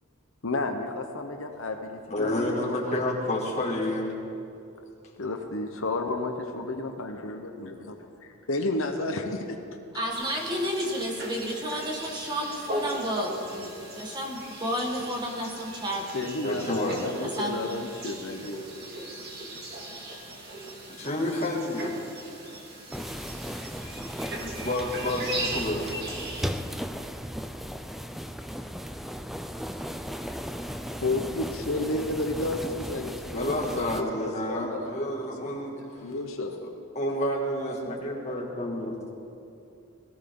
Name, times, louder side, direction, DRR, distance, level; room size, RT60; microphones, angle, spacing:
voice 1, 0.4-3.0 3.3-3.5 5.2-8.0 8.5-9.6 16.1-18.7 31.0-34.9 35.5-36.6, left 2 dB, 65° left, 4 dB, 1.0 m, -32 dB
voice 2, 2.1-4.1 16.4-17.0 21.0-21.9 24.4-25.9 33.3-36.1 36.9-38.9, left 1 dB, 30° left, -2 dB, 2.4 m, -29 dB
voice 3, 9.9-16.3 17.2-17.7, equal, 20° right, 0 dB, 1.7 m, -31 dB
sound 1, 10.1-26.5, right 1 dB, 45° right, 2.2 m, -39 dB
sound 2, 22.9-34.0, equal, ahead, 0.4 m, -36 dB
21.5 x 15.5 x 3.9 m, 2.6 s
head